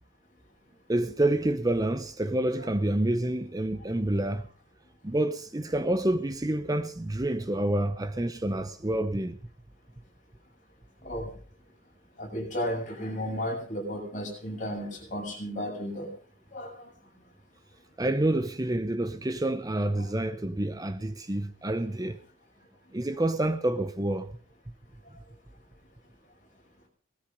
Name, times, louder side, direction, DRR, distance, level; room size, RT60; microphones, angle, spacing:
voice 1, 0.9-4.5 5.0-9.4 18.0-22.2 22.9-24.3, right 1 dB, 20° right, 0.7 m, -28 dB
voice 2, 2.3-2.7 11.0-11.3 12.2-16.1 16.5-16.9 19.9-20.1, equal, 40° left, 7.0 m, -34 dB
19.0 x 13.5 x 5.3 m
head